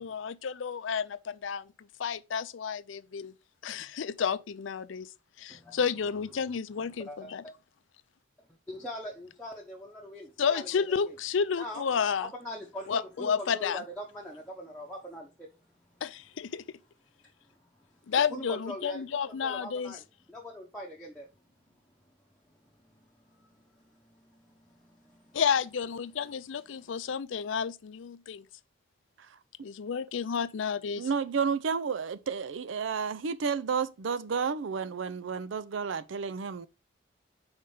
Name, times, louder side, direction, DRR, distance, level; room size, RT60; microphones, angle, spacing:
voice 1, 0.0-1.7 2.0-3.3 3.6-5.1 5.4-7.4 10.4-12.3 12.9-13.8 16.0-16.6 18.1-19.9 25.3-28.4 29.6-31.1, left 6 dB, 80° left, 0.4 m, -31 dB
voice 2, 5.5-5.8 6.3-6.4 6.9-7.5 8.7-11.1 11.5-11.8 12.2-15.5 17.2-18.0 18.3-21.8 22.4-25.4 26.7-27.1, equal, 5° left, 0.9 m, -43 dB
voice 3, 31.0-36.7, right 6 dB, 80° right, 0.5 m, -31 dB
5.0 x 4.4 x 5.4 m
head